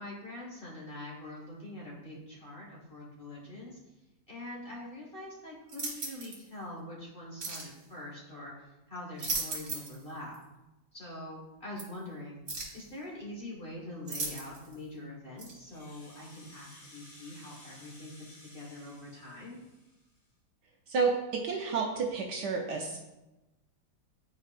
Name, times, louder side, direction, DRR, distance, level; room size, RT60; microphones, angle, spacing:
voice 1, 0.0-3.8 4.3-8.5 8.9-10.3 10.9-12.4 12.7-18.1 18.5-19.6, left 1 dB, 30° left, -5 dB, 1.5 m, -44 dB
sound 1, 5.7-6.4 7.4-7.7 9.0-10.0 10.3-10.4 11.8-11.9 12.5-12.8 14.1-14.7 15.4-15.5, right 3 dB, 45° right, 1.7 m, -37 dB
Rattle (instrument), 15.5-20.3, left 1 dB, 70° left, 3.2 m, -55 dB
voice 2, 20.9-23.0, right 4 dB, 65° right, 0 dB, 1.2 m, -30 dB
9.6 x 4.6 x 2.5 m, 1.0 s
omnidirectional pair, 2.1 m